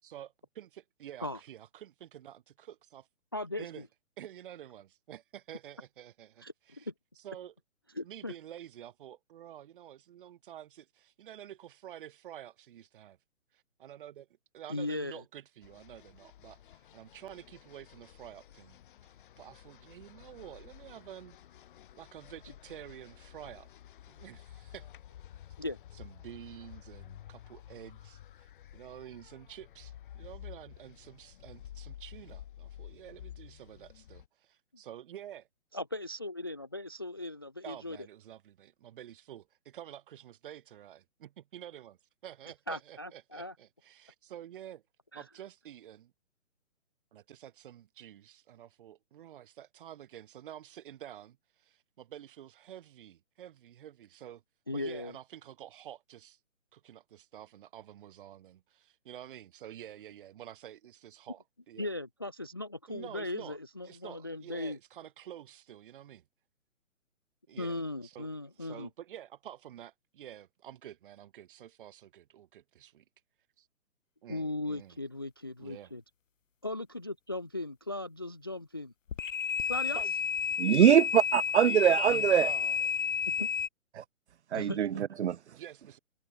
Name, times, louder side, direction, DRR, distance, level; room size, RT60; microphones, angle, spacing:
voice 1, 0.0-3.1 3.6-3.9 4.2-6.9 7.2-7.5 8.0-13.2 13.5-14.3 14.5-18.8 19.4-21.4 21.9-23.7 24.1-24.9 25.9-35.5 37.6-44.8 45.1-46.1 47.1-54.4 54.7-56.4 56.7-61.9 62.9-63.6 63.8-66.2 67.5-68.3 68.6-73.0 73.6-73.7 74.2-75.0 75.6-75.9 79.9-80.2 80.8-81.0 81.6-83.0 85.5-86.0, right 11 dB, 40° right, 6.6 m, -49 dB
voice 2, 3.3-3.7 6.4-6.9 8.0-8.3 14.7-15.2 25.6-25.8 35.7-38.0 42.7-43.5 45.1-45.2 54.7-55.1 61.8-64.8 67.6-68.9 74.3-76.0 76.6-78.9 79.7-80.0 83.3-83.5 84.5-84.8, left 2 dB, 20° left, 0.4 m, -38 dB
sound 1, 15.6-34.3, left 11 dB, 40° left, 3.2 m, -51 dB
sound 2, 79.1-83.7, left 7 dB, 70° left, 1.5 m, -31 dB
voice 3, 80.6-82.5 84.0-84.1 84.5-85.4, right 9 dB, 55° right, 0.8 m, -23 dB
hypercardioid pair, 155°, 40 cm